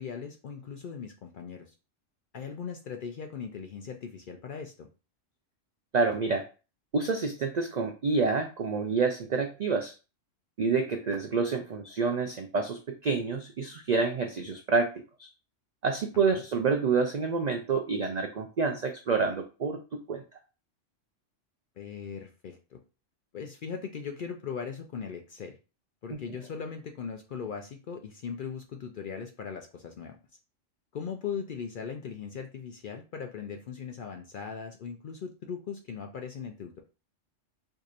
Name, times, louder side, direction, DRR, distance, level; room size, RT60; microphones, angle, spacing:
voice 1, 0.0-1.7 2.3-4.9 16.3-16.4 21.8-22.8 23.3-25.6 26.0-30.2 30.9-36.8, left 6 dB, 60° left, 4 dB, 0.5 m, -39 dB
voice 2, 5.9-6.5 6.9-9.9 10.6-14.9 15.2-15.3 15.8-19.8 20.1-20.2 26.1-26.2, right 4 dB, 75° right, 5 dB, 0.4 m, -28 dB
4.6 x 2.7 x 2.4 m, 0.32 s
omnidirectional pair, 1.3 m